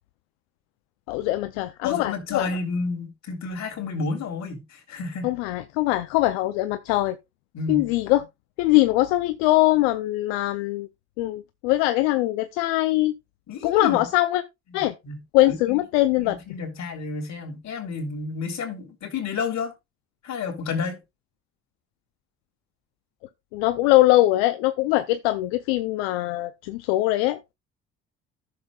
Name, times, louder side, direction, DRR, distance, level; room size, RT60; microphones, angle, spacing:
voice 1, 1.1-2.5 5.2-7.2 7.7-8.2 8.6-10.9 11.2-13.1 13.6-14.4 14.7-14.9 15.3-16.4 23.5-27.5, left 17 dB, 85° left, 0.6 m, -22 dB
voice 2, 1.8-5.3 7.5-7.9 13.5-14.0 14.7-15.2 15.5-15.8 16.2-19.7 20.2-21.0, left 4 dB, 55° left, 3.4 m, -31 dB
14.0 x 6.7 x 2.3 m
hypercardioid pair, 60°, 33 cm